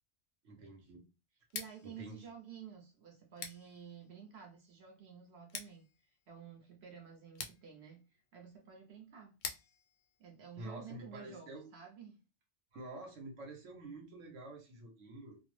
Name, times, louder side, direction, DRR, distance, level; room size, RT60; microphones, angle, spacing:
voice 1, 0.4-1.0 1.8-2.3 10.6-11.6 12.7-15.4, right 2 dB, 85° right, 1.2 m, -48 dB
Scissors, 1.4-11.2, left 6 dB, 85° left, 0.9 m, -51 dB
voice 2, 1.5-8.0 8.3-9.4 10.2-12.2, right 7 dB, 60° right, 0.9 m, -52 dB
2.6 x 2.0 x 3.1 m
omnidirectional pair, 1.3 m